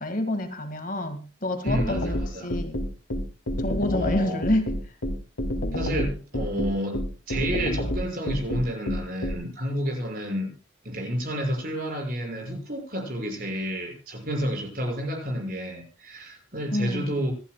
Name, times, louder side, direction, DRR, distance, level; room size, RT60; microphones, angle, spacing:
voice 1, 0.0-2.8 3.6-4.7 16.7-17.1, left 1 dB, 40° left, 8 dB, 1.8 m, -28 dB
voice 2, 1.6-2.5 3.9-4.4 5.7-10.5 10.8-17.3, equal, 45° right, 3 dB, 6.0 m, -30 dB
sound 1, 1.7-9.3, left 1 dB, 85° left, 2.7 m, -28 dB
27.0 x 11.5 x 2.2 m, 0.33 s
head